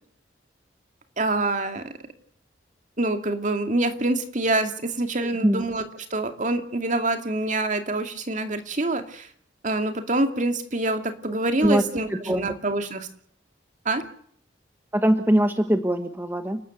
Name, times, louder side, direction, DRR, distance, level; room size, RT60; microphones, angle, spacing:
voice 1, 1.2-1.9 3.0-9.3 9.6-13.1 13.8-14.1, right 2 dB, 40° right, 7 dB, 2.4 m, -26 dB
voice 2, 14.9-16.6, equal, 10° right, 7 dB, 1.1 m, -21 dB
30.0 x 12.5 x 8.2 m, 0.62 s
head